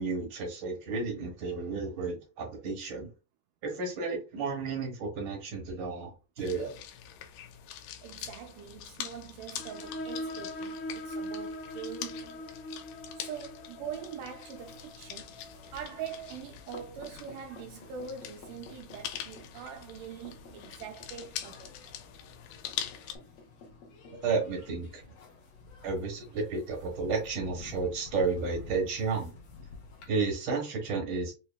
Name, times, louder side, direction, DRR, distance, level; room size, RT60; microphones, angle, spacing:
voice 1, 0.0-3.1 3.6-6.1 6.4-6.8 24.2-25.0 25.8-29.3 30.1-31.3, right 4 dB, 65° right, 1.2 m, -32 dB
sound 1, 6.4-23.2, left 10 dB, 80° left, 2.2 m, -44 dB
voice 2, 8.0-12.4 13.2-15.3 15.7-21.8, right 8 dB, 85° right, 1.8 m, -43 dB
sound 2, 9.6-16.9, left 1 dB, 45° left, 1.8 m, -42 dB
sound 3, 14.6-30.1, left 4 dB, 65° left, 1.7 m, -51 dB
5.4 x 2.8 x 2.2 m
omnidirectional pair, 4.1 m